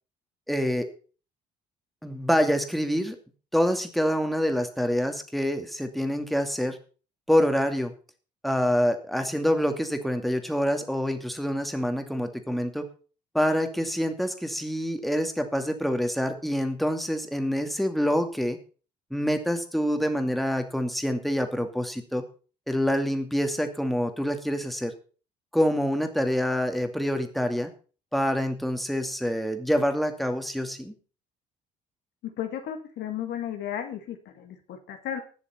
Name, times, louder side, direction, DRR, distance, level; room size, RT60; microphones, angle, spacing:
voice 1, 0.5-0.9 2.0-3.2 3.5-6.8 7.3-7.9 8.4-12.9 13.3-18.6 19.1-22.2 22.7-24.9 25.5-27.7 28.1-30.9, equal, ahead, 6 dB, 2.4 m, -26 dB
voice 2, 32.2-35.2, left 10 dB, 60° left, 5 dB, 1.9 m, -34 dB
20.0 x 7.1 x 4.4 m, 0.38 s
hypercardioid pair, 50°, 20 cm